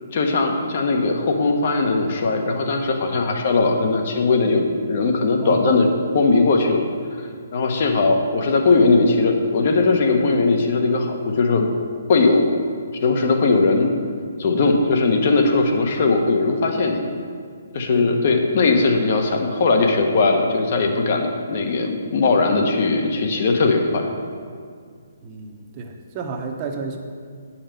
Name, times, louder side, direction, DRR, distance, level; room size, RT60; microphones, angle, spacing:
voice 1, 0.1-6.9 7.5-11.7 12.1-12.5 13.0-13.9 14.4-17.0 17.7-24.1, left 3 dB, 45° left, 3 dB, 1.2 m, -19 dB
voice 2, 5.4-5.8 17.9-18.2 25.2-27.0, right 4 dB, 25° right, 3 dB, 0.9 m, -31 dB
8.8 x 5.7 x 6.9 m, 2.1 s
hypercardioid pair, 160°, 0 cm